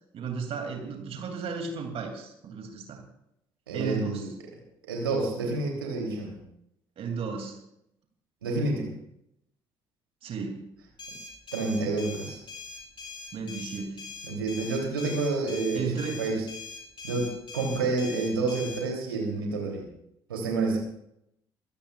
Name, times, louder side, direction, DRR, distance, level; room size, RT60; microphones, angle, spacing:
voice 1, 0.1-3.0 3.7-4.3 7.0-7.6 10.2-10.7 13.3-14.0 15.7-16.2, right 5 dB, 55° right, 4 dB, 2.8 m, -34 dB
voice 2, 3.7-4.3 4.9-6.4 8.4-8.9 11.5-12.4 14.2-16.4 17.0-19.8 20.3-20.8, right 3 dB, 85° right, 0 dB, 3.2 m, -29 dB
sound 1, 11.0-18.8, left 5 dB, 40° left, 6.1 m, -42 dB
23.5 x 16.0 x 2.5 m, 0.77 s
figure-of-eight pair, 50°, 12 cm